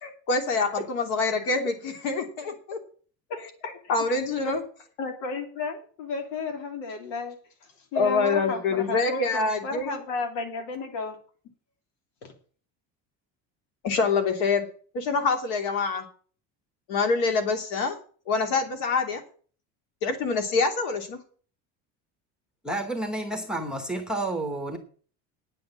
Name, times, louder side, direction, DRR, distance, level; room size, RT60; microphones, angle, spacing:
voice 1, 0.0-2.8 3.9-4.6 7.9-9.9 13.8-14.7 14.9-16.0 16.9-18.0 18.3-19.2 20.0-21.2, left 4 dB, 65° left, 5 dB, 3.1 m, -25 dB
voice 2, 5.0-11.2 12.2-12.3, left 4 dB, 80° left, 4 dB, 3.2 m, -33 dB
voice 3, 22.6-24.8, right 2 dB, ahead, 4 dB, 0.9 m, -30 dB
9.6 x 7.8 x 7.7 m, 0.43 s
cardioid pair, 180°, 36 cm